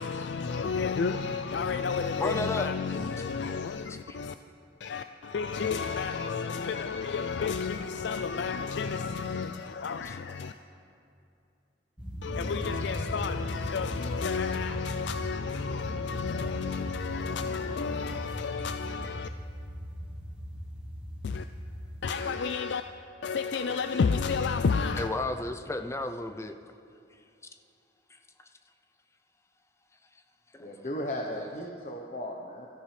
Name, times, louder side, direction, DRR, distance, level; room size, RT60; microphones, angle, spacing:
voice 1, 0.0-4.3 4.8-10.5 12.2-19.3 21.2-21.4 22.0-22.8 23.2-25.1, left 5 dB, 65° left, 0.4 m, -31 dB
voice 2, 2.2-2.7 4.1-4.2 25.0-26.5 28.1-28.2 30.5-30.9, left 2 dB, 15° left, 0.6 m, -33 dB
sound 1, 12.0-22.3, equal, 5° right, 1.4 m, -38 dB
voice 3, 30.6-32.7, equal, 40° left, 1.0 m, -36 dB
23.0 x 13.5 x 3.4 m
head